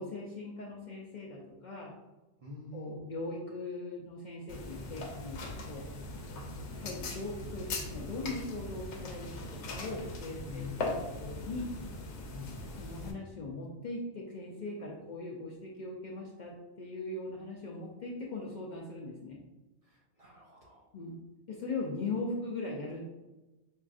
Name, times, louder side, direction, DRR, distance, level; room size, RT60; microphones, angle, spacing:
voice 1, 0.0-1.9 2.7-5.8 6.6-11.7 12.8-19.4 20.9-21.2 21.5-23.0, left 2 dB, 55° left, -3 dB, 0.5 m, -40 dB
voice 2, 2.4-3.0 10.4-11.1 12.3-12.6 19.8-20.9, left 3 dB, 40° right, -4 dB, 0.7 m, -46 dB
sound 1, 4.5-13.1, left 2 dB, 80° left, 0.9 m, -40 dB
5.4 x 2.4 x 2.4 m, 1.1 s
omnidirectional pair, 1.2 m